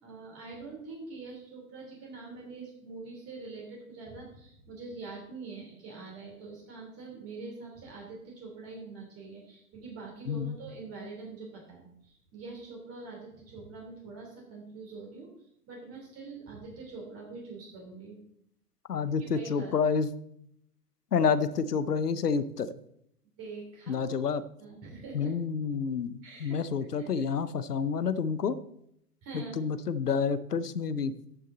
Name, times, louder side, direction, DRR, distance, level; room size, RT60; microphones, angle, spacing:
voice 1, 0.0-15.3 15.7-18.2 19.2-19.7 23.4-24.1 24.6-25.3 26.2-26.6 27.0-27.3 29.2-29.6, right 3 dB, 30° right, -1 dB, 3.2 m, -44 dB
voice 2, 18.9-20.1 21.1-22.7 23.9-24.4 25.1-28.6 29.3-31.1, left 6 dB, 90° left, 15 dB, 0.9 m, -29 dB
13.0 x 6.4 x 3.9 m, 0.73 s
hypercardioid pair, 110°, 45 cm